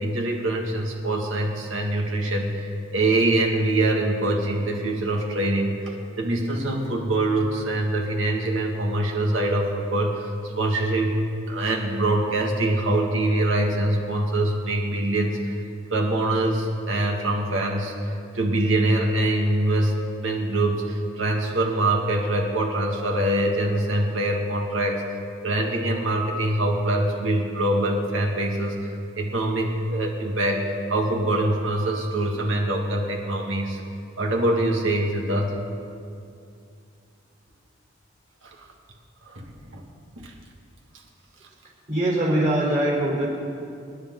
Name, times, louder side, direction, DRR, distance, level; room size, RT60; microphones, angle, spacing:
voice 1, 0.0-10.3 10.6-15.5 15.9-25.1 25.4-28.9 29.2-33.8 34.2-35.5 38.4-38.7 39.3-39.8 40.2-40.3, right 1 dB, 90° right, 0 dB, 2.2 m, -24 dB
voice 2, 41.9-43.3, right 1 dB, 40° right, -3 dB, 3.7 m, -22 dB
27.5 x 10.5 x 3.9 m, 2.5 s
head